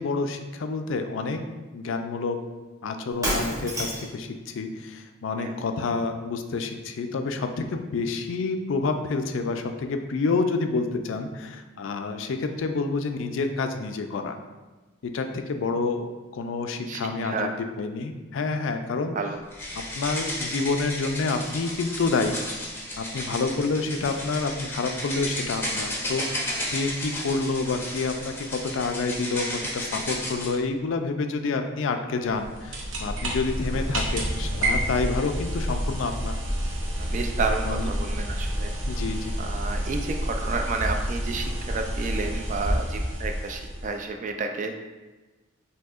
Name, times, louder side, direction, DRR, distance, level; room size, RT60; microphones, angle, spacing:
voice 1, 0.0-1.4 1.7-2.4 2.8-14.4 15.0-17.5 17.8-19.2 19.8-22.4 23.0-36.4 37.6-37.9 38.8-39.3, left 3 dB, 65° left, 6 dB, 0.4 m, -28 dB
Shatter, 3.2-4.2, right 1 dB, 15° right, 0.9 m, -28 dB
voice 2, 16.9-17.5 19.2-19.4 37.0-38.7 39.4-44.7, right 4 dB, 35° right, 4 dB, 0.3 m, -31 dB
sound 1, 19.5-30.5, left 1 dB, 10° left, 0.6 m, -33 dB
sound 2, 32.3-44.1, equal, 70° right, 0.8 m, -29 dB
6.1 x 2.8 x 2.4 m, 1.2 s
head